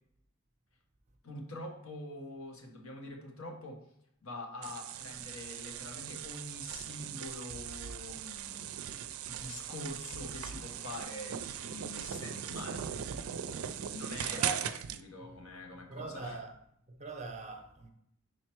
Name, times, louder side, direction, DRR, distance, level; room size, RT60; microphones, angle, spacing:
voice 1, 1.2-3.8 4.2-8.8 9.2-12.9 13.9-14.4 15.0-16.4, left 2 dB, 85° left, 1.2 m, -45 dB
sound 1, 4.6-15.0, right 9 dB, 85° right, 0.4 m, -39 dB
voice 2, 14.3-14.7 15.2-15.4 15.7-16.6 16.9-17.9, right 3 dB, 35° right, 0.7 m, -42 dB
4.9 x 4.4 x 4.5 m
head